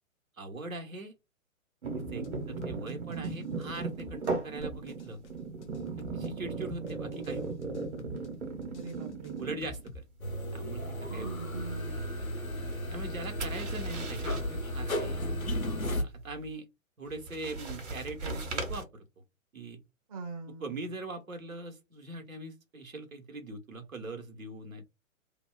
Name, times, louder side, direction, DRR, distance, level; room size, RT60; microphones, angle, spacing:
voice 1, 0.4-1.1 1.9-5.2 6.0-7.5 9.4-10.0 10.5-11.4 12.9-15.2 16.0-16.7 17.0-19.0 19.5-19.8 20.6-24.8, right 2 dB, 80° right, 1.0 m, -41 dB
sound 1, 1.8-10.0 10.3-10.7 13.0-14.5 17.1-18.8, right 3 dB, 55° right, 1.1 m, -37 dB
sound 2, 2.0-2.3 2.6-3.4 3.6-4.3 4.6-5.3 5.6-6.3 6.6-7.4 7.6-8.3 8.6-10.0, left 3 dB, 60° left, 0.5 m, -48 dB
voice 2, 8.7-9.4 11.1-11.9 20.1-20.8, right 4 dB, 25° right, 0.5 m, -42 dB
sound 3, 10.2-16.0, equal, 90° left, 0.8 m, -34 dB
2.8 x 2.1 x 2.3 m
figure-of-eight pair, 125°, 41 cm